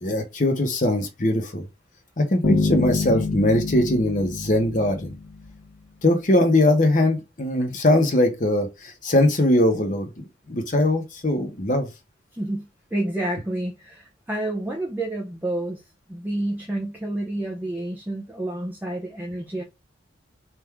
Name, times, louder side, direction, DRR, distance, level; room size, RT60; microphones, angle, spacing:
voice 1, 0.0-1.6 2.2-5.1 6.0-11.9, left 1 dB, 40° left, 0.9 m, -21 dB
sound 1, 2.4-5.5, left 3 dB, 85° left, 0.9 m, -26 dB
voice 2, 12.3-15.8 16.1-19.6, right 1 dB, 10° right, 0.6 m, -29 dB
3.5 x 2.6 x 4.5 m
head